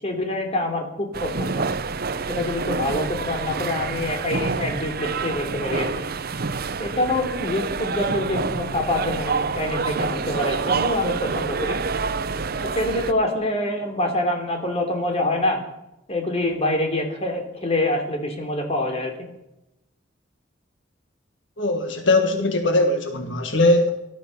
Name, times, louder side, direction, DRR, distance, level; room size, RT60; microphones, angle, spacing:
voice 1, 0.0-1.7 2.3-6.1 6.8-11.8 12.6-15.6 16.1-19.3, left 1 dB, 35° left, 3 dB, 3.1 m, -26 dB
sound 1, 1.1-13.1, right 4 dB, 50° right, 0.7 m, -27 dB
voice 2, 21.6-23.9, left 2 dB, 75° left, 5 dB, 1.7 m, -20 dB
18.5 x 12.5 x 5.6 m, 0.89 s
head